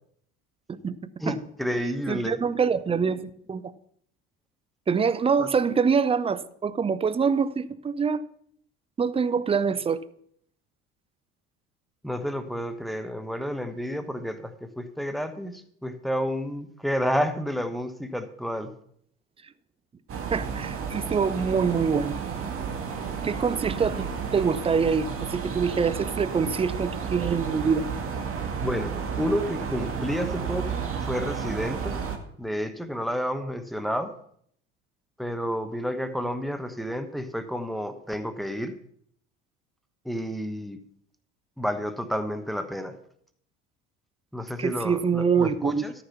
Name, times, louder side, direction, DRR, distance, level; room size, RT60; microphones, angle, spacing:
voice 1, 1.2-2.4 5.4-5.5 12.0-18.7 28.6-28.9 29.2-32.0 32.4-34.1 35.2-38.7 40.0-40.8 41.6-42.9 44.3-45.9, equal, ahead, 8 dB, 1.1 m, -30 dB
voice 2, 2.1-3.6 4.9-8.2 9.0-10.0 20.3-22.2 23.2-27.9 44.6-45.8, right 6 dB, 15° right, 15 dB, 0.6 m, -25 dB
sound 1, 20.1-32.2, right 6 dB, 35° right, 1.8 m, -32 dB
13.0 x 5.9 x 5.7 m, 0.66 s
figure-of-eight pair, 60°, 36 cm